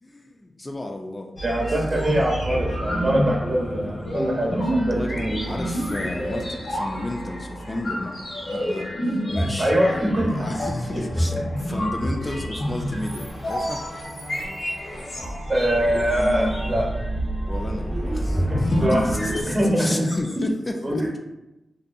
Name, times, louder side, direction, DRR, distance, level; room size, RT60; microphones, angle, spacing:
voice 1, 0.0-1.3 1.7-1.9 3.6-4.2 4.9-9.7 10.3-13.8 17.5-21.2, left 1 dB, 30° left, 2 dB, 0.3 m, -33 dB
sound 1, 1.4-19.4, equal, 70° left, 0.9 m, -27 dB
voice 2, 1.4-5.4 9.6-10.4 11.3-11.4 15.5-16.9 18.3-20.5 20.8-21.0, equal, 45° right, -2 dB, 0.8 m, -24 dB
2.6 x 2.2 x 2.4 m, 0.94 s
cardioid pair, 55°, 0 cm